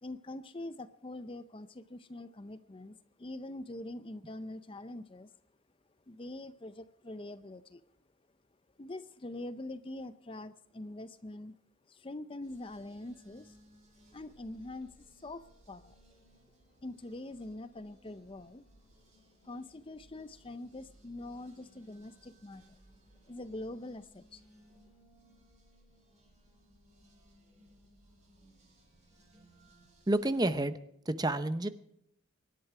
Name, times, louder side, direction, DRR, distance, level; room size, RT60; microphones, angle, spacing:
voice 1, 0.0-5.3 6.1-7.8 8.8-11.5 11.9-13.6 14.1-16.0 16.8-18.6 19.4-22.8 23.3-24.4, left 2 dB, 25° left, 13 dB, 0.5 m, -44 dB
sound 1, 12.4-30.6, right 1 dB, 35° right, 6.7 m, -62 dB
voice 2, 30.1-30.8 31.1-31.7, right 1 dB, 20° right, 12 dB, 0.8 m, -29 dB
24.5 x 11.5 x 4.8 m, 0.73 s
head